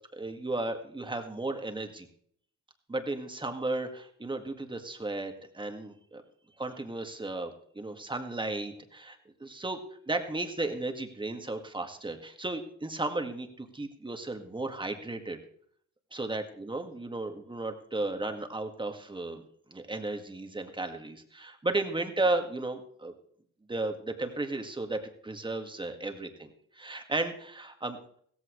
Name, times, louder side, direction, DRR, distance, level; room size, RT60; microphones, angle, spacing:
voice 1, 0.1-2.1 2.9-6.2 6.6-9.8 10.1-15.4 16.1-19.4 19.7-23.1 23.7-28.2, right 2 dB, 15° right, 5 dB, 2.0 m, -34 dB
16.0 x 14.5 x 3.2 m, 0.62 s
cardioid pair, 90°, 30 cm